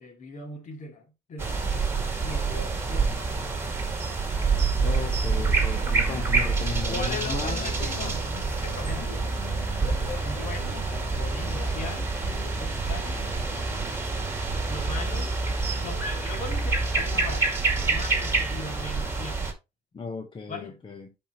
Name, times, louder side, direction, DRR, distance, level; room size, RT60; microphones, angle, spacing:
voice 1, 0.0-1.6 2.2-3.1 6.9-9.1 9.8-13.2 14.6-15.4 15.7-17.5 17.8-19.4 20.5-20.8, left 3 dB, 45° left, 2.6 m, -39 dB
sound 1, 1.4-19.5, right 4 dB, 15° right, 2.3 m, -27 dB
voice 2, 4.8-7.6 19.9-21.1, left 4 dB, 30° left, 1.1 m, -35 dB
sound 2, 5.4-13.8, left 6 dB, 85° left, 2.0 m, -43 dB
11.0 x 4.5 x 3.1 m
cardioid pair, 110°, 17 cm